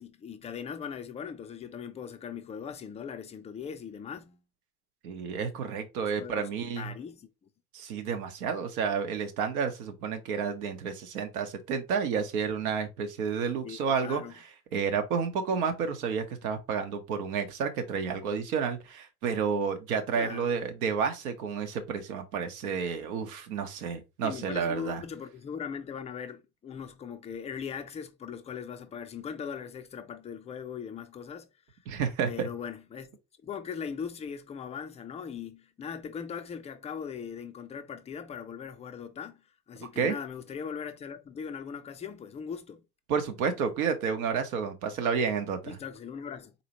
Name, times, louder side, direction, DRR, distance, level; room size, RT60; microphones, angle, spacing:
voice 1, 0.0-4.4 6.2-6.5 6.8-7.5 13.6-14.3 20.1-20.5 24.2-31.8 32.3-33.1 33.4-42.8 45.6-46.5, left 7 dB, 15° left, 0.4 m, -40 dB
voice 2, 5.0-6.9 7.7-14.4 14.7-25.0 31.9-32.5 40.0-40.1 43.1-45.8, right 6 dB, 65° right, 0.9 m, -30 dB
4.0 x 2.9 x 2.9 m
figure-of-eight pair, 65°, 47 cm